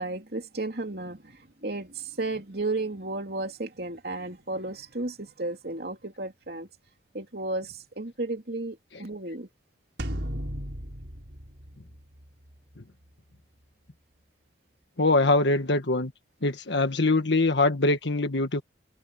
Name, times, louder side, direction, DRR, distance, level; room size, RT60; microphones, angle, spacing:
voice 1, 0.0-1.3 1.6-6.7 7.1-9.5, right 2 dB, 60° right, 3.1 m, -33 dB
sound 1, 10.0-12.5, equal, 75° right, 5.2 m, -35 dB
voice 2, 15.0-16.1 16.4-18.6, left 2 dB, 75° left, 1.5 m, -23 dB
head